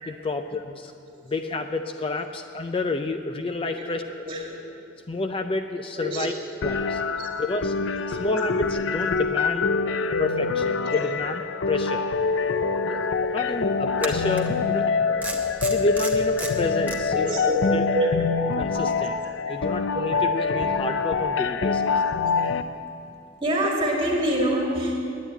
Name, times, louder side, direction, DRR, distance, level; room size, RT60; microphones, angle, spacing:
voice 1, 0.1-0.9 1.2-4.3 5.1-6.3 6.6-7.0 7.4-9.8 10.2-12.1 12.9-13.0 13.3-14.9 15.3-15.4 15.7-17.3 17.7-17.9 18.6-19.2 19.5-21.9, left 3 dB, 30° left, 7 dB, 0.4 m, -29 dB
voice 2, 3.7-4.5 6.0-6.3 6.6-6.9 7.2-7.3 8.0-8.3 9.9-10.2 10.8-11.1 12.3-12.6 13.2-13.3 15.1-15.4 17.1-18.4 19.5-19.6 20.1-20.3 23.4-25.1, equal, 30° right, -1 dB, 2.2 m, -28 dB
sound 1, 6.6-22.6, left 4 dB, 85° left, 0.5 m, -25 dB
sound 2, 12.6-12.7 14.0-14.5 15.2-17.0, right 2 dB, 10° right, 1.2 m, -33 dB
9.4 x 9.2 x 9.9 m, 2.6 s
head